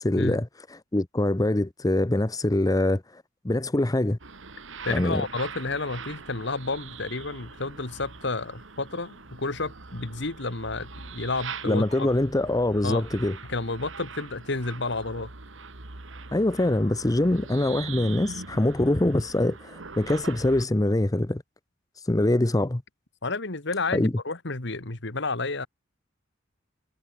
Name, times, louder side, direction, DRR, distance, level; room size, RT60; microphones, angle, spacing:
voice 1, 0.0-4.2 4.9-5.2 11.6-13.4 16.3-21.4 22.0-22.8 23.9-24.1, left 1 dB, 20° left, 0.7 m, -24 dB
sound 1, 4.2-20.7, right 4 dB, 75° right, 2.3 m, -42 dB
voice 2, 4.8-12.1 12.8-13.0 13.5-15.3 23.2-25.7, left 3 dB, 65° left, 2.1 m, -31 dB
head